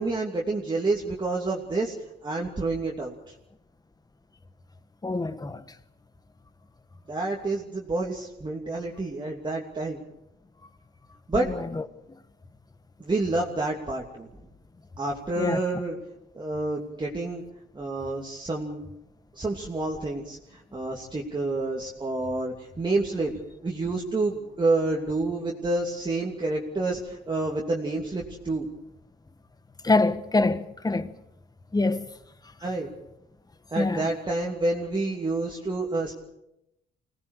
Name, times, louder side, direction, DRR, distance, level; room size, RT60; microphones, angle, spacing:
voice 1, 0.0-1.9 2.2-3.3 7.1-10.0 11.3-11.5 13.0-14.3 15.0-15.9 16.3-17.4 17.7-18.8 19.3-23.3 23.6-28.7 32.6-32.9 33.7-36.1, right 2 dB, 25° right, 2.8 m, -28 dB
voice 2, 5.0-5.6 11.3-11.8 15.4-15.6 29.8-31.1 31.7-32.1 33.7-34.1, left 3 dB, 20° left, 1.3 m, -25 dB
25.5 x 18.5 x 6.6 m
cardioid pair, 90°, 20 cm